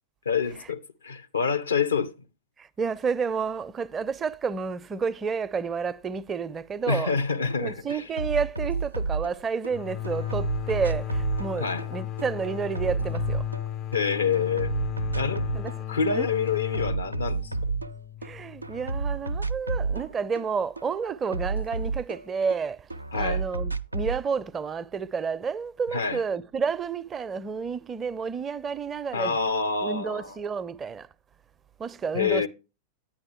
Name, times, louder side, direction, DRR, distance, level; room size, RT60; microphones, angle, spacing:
voice 1, 0.3-2.1 6.9-8.1 11.6-11.9 13.9-14.7 15.1-15.5 15.9-17.5 23.1-23.4 25.9-26.2 29.1-30.4 32.1-32.5, left 5 dB, 75° left, 0.8 m, -27 dB
voice 2, 2.6-7.1 7.4-13.4 15.5-15.7 16.0-16.3 18.2-29.4 29.8-31.1 31.8-32.5, right 5 dB, 20° right, 0.5 m, -30 dB
sound 1, 7.1-7.2 7.5-9.7 10.0-14.0 14.3-15.8 16.1-18.3 18.6-22.6 22.9-24.2, right 4 dB, 85° right, 0.4 m, -31 dB
sound 2, 9.7-19.2, left 11 dB, 35° left, 0.4 m, -34 dB
9.9 x 9.8 x 3.0 m
figure-of-eight pair, 90°, 0 cm